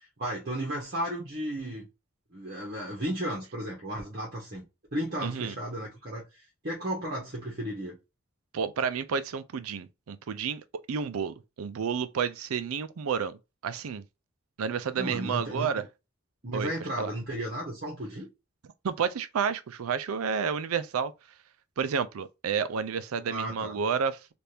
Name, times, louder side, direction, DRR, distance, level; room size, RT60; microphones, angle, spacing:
voice 1, 0.2-1.9 2.3-4.6 4.9-8.0 14.9-15.7 16.4-18.3 23.3-23.8, right 1 dB, 45° right, 1.1 m, -34 dB
voice 2, 5.2-5.6 8.5-10.6 10.9-13.4 13.6-14.0 14.6-15.8 16.5-16.7 17.0-17.1 18.8-21.1 21.8-24.3, right 6 dB, 90° right, 0.4 m, -30 dB
3.4 x 2.5 x 2.7 m
head